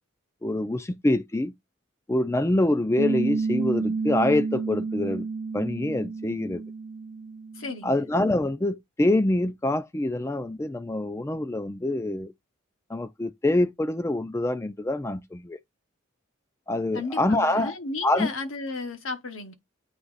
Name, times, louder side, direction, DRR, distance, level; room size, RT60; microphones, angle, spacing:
voice 1, 0.4-1.5 2.1-5.3 5.5-6.6 7.8-12.3 12.9-15.6 16.7-17.7 18.0-18.3, left 1 dB, 15° left, 0.3 m, -25 dB
Piano, 3.0-8.1, right 4 dB, 55° right, 0.5 m, -30 dB
voice 2, 7.6-8.0 16.9-19.5, left 3 dB, 80° left, 1.1 m, -34 dB
8.0 x 2.9 x 4.0 m
head